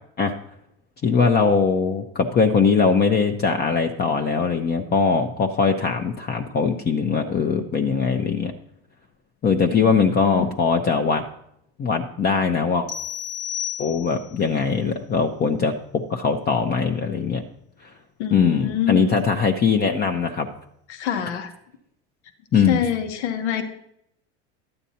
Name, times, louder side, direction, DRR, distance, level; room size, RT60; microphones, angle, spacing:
voice 1, 1.0-8.5 9.4-11.2 11.8-12.9 13.8-17.4 17.8-17.9 18.3-20.5 22.5-22.8, left 5 dB, 30° left, 4 dB, 0.7 m, -21 dB
voice 2, 9.7-10.5 18.2-19.2 20.9-21.5 22.6-23.6, left 9 dB, 85° left, 6 dB, 1.2 m, -26 dB
sound 1, 12.9-14.4, left 10 dB, 45° left, 1.1 m, -32 dB
12.0 x 8.8 x 2.8 m, 0.75 s
supercardioid pair, 100°, 33 cm